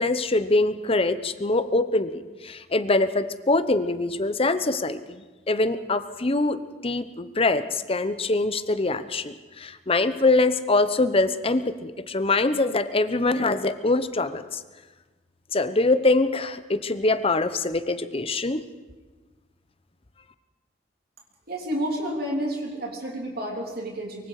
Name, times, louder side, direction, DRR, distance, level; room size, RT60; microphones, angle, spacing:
voice 1, 0.0-14.6 15.5-18.6, left 2 dB, 35° left, 12 dB, 1.0 m, -24 dB
voice 2, 21.5-24.3, equal, 60° right, 0 dB, 3.5 m, -30 dB
24.0 x 23.5 x 4.9 m, 1.3 s
head